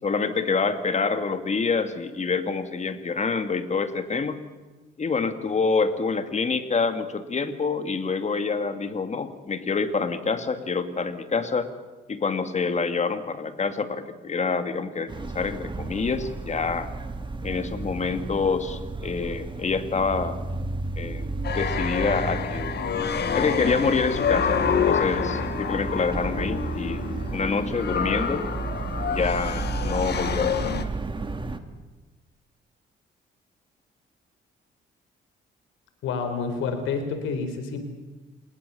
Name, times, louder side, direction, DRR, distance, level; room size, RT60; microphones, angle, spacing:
voice 1, 0.0-4.4 5.0-11.7 12.1-16.9 17.4-20.4 21.0-21.3 21.5-22.8 23.3-27.0 27.3-28.4 29.1-30.7, left 4 dB, 35° left, 9 dB, 2.3 m, -27 dB
sound 1, 15.1-31.6, right 3 dB, 25° right, 2.0 m, -32 dB
sound 2, 21.4-30.8, left 7 dB, 55° left, 1.8 m, -28 dB
voice 2, 36.0-37.8, left 5 dB, 90° left, 8 dB, 4.2 m, -28 dB
28.0 x 20.5 x 7.1 m, 1.2 s
cardioid pair, 90°, 20 cm